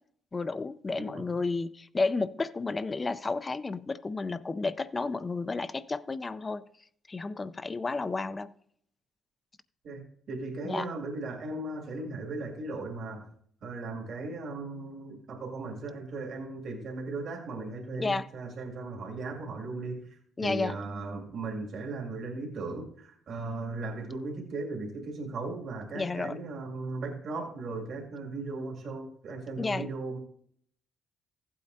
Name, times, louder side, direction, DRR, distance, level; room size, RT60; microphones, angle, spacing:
voice 1, 0.3-6.6 7.1-8.5 10.6-10.9 17.9-18.3 20.4-20.8 25.9-26.4 29.6-29.9, left 3 dB, 25° left, 0.4 m, -32 dB
voice 2, 9.8-13.3 13.6-30.2, right 3 dB, 65° right, 2.2 m, -37 dB
15.0 x 8.5 x 2.7 m
cardioid pair, 90°, 0 cm